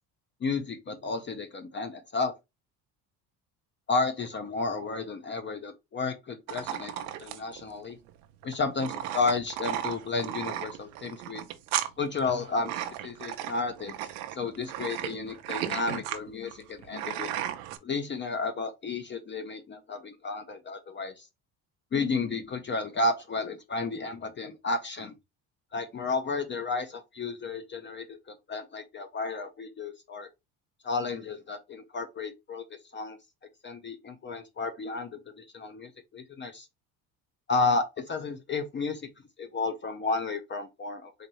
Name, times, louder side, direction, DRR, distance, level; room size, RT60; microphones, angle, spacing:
voice 1, 0.4-2.3 3.9-8.0 8.4-11.4 12.0-17.3 17.8-21.3 21.9-25.1 25.7-30.3 30.8-33.2 33.6-36.7 37.5-39.1 39.4-41.1, left 3 dB, 25° left, 0.4 m, -32 dB
sound 1, 6.5-17.8, right 11 dB, 85° right, 0.7 m, -35 dB
4.1 x 2.6 x 3.0 m
supercardioid pair, 85°, 44 cm